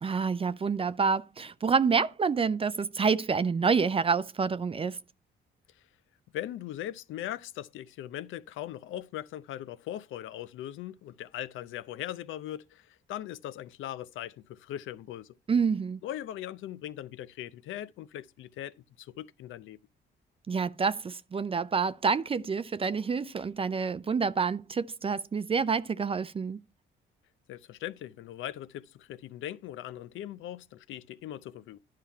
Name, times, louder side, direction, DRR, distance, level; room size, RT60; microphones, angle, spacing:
voice 1, 0.0-5.0 15.5-16.0 20.5-26.6, right 5 dB, 30° right, 0.4 m, -28 dB
voice 2, 6.3-15.3 16.0-19.8 27.5-31.8, left 12 dB, 80° left, 0.6 m, -40 dB
10.5 x 5.7 x 4.5 m
cardioid pair, 90°, 20 cm